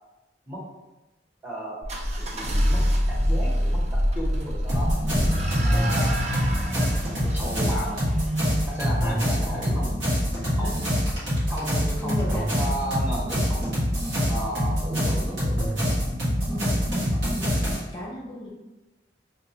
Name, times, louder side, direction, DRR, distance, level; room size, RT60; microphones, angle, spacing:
voice 1, 1.4-1.8 2.2-6.2 7.2-8.2 8.7-10.2 10.6-10.9 11.5-13.8 14.3-15.6, equal, 10° right, -4 dB, 0.8 m, -34 dB
sound 1, 1.8-8.7, equal, 35° right, 0.5 m, -26 dB
sound 2, 4.7-17.8, equal, 80° right, 1.4 m, -25 dB
voice 2, 5.0-5.8 10.4-10.8 12.0-12.5 16.5-18.5, left 1 dB, 25° left, -4 dB, 0.5 m, -37 dB
4.6 x 2.1 x 2.8 m, 1.0 s
head